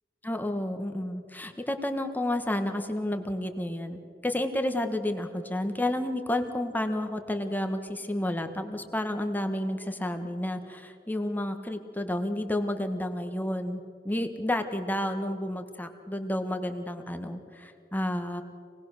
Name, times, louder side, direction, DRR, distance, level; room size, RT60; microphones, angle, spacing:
voice 1, 0.2-18.4, left 1 dB, 10° left, 7 dB, 1.4 m, -31 dB
26.5 x 19.0 x 6.6 m, 2.3 s
head